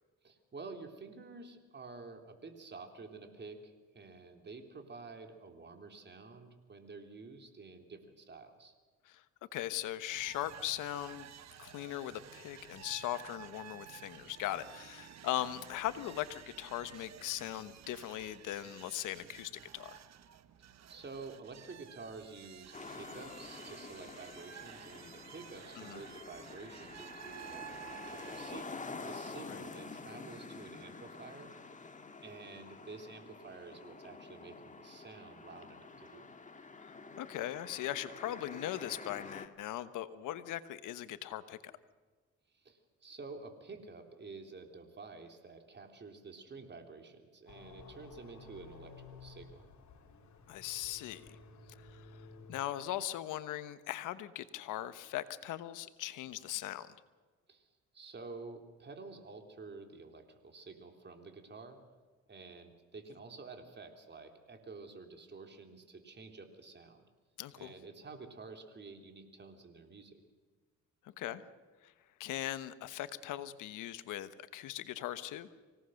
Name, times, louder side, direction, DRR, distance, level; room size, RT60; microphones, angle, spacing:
voice 1, 0.2-8.7 20.6-31.5 32.2-36.3 42.5-49.7 57.5-57.7 57.9-61.8 62.3-67.1 67.6-70.2, right 4 dB, 35° right, 5 dB, 3.5 m, -50 dB
voice 2, 9.5-11.3 11.6-20.0 25.8-26.0 29.5-29.6 36.8-41.7 50.5-51.4 51.8-56.9 67.4-67.7 71.0-71.4 71.8-71.9 72.2-75.5, left 13 dB, 90° left, 13 dB, 1.2 m, -39 dB
sound 1, 10.1-28.6, right 11 dB, 60° right, 1.2 m, -53 dB
sound 2, 22.7-39.5, left 4 dB, 25° left, 1.8 m, -48 dB
sound 3, 47.5-52.5, left 4 dB, 65° left, 3.3 m, -54 dB
25.0 x 17.5 x 6.5 m, 1.4 s
cardioid pair, 90°, 30 cm